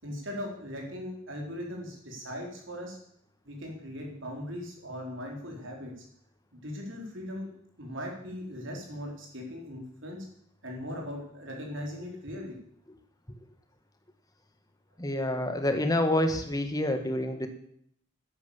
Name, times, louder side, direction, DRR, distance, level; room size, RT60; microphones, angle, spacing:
voice 1, 0.0-3.0 3.4-5.9 6.5-7.5 7.8-10.3 10.6-12.6, equal, 60° right, 0 dB, 4.2 m, -39 dB
voice 2, 15.0-17.5, left 1 dB, 20° left, 7 dB, 1.5 m, -27 dB
11.5 x 10.5 x 7.1 m, 0.68 s
head